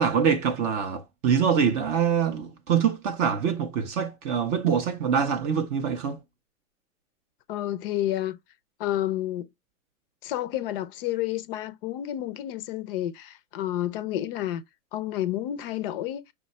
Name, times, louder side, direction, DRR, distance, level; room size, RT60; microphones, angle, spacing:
voice 1, 0.0-6.2, right 7 dB, 30° right, 0.4 m, -24 dB
voice 2, 7.5-8.4 8.8-9.5 10.2-14.6 14.9-16.2, left 13 dB, 40° left, 0.5 m, -30 dB
5.6 x 2.1 x 4.0 m
hypercardioid pair, 130°, 43 cm